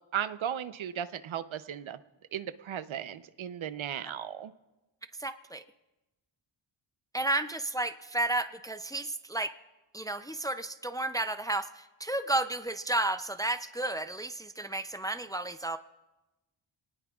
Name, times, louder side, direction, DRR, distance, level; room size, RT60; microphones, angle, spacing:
voice 1, 0.1-2.0 2.3-4.5, right 9 dB, 75° right, 13 dB, 0.7 m, -36 dB
voice 2, 5.2-5.6 7.1-9.5 9.9-15.8, right 2 dB, 10° left, 9 dB, 0.4 m, -32 dB
27.5 x 19.0 x 2.4 m, 1.0 s
wide cardioid pair, 115°, 48 cm